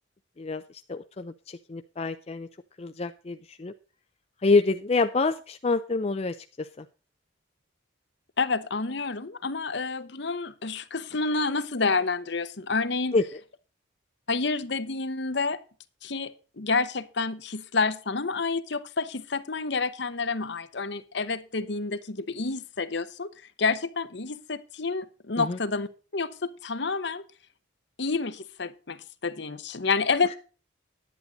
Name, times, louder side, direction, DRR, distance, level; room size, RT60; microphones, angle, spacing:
voice 1, 0.4-2.5 2.8-3.7 4.4-6.9 13.1-13.2 25.4-25.6, left 3 dB, 30° left, 8 dB, 0.4 m, -27 dB
voice 2, 8.4-13.1 14.3-15.6 16.0-23.3 23.6-27.2 28.0-30.4, left 4 dB, 55° left, 12 dB, 0.9 m, -29 dB
10.5 x 9.5 x 3.9 m, 0.36 s
head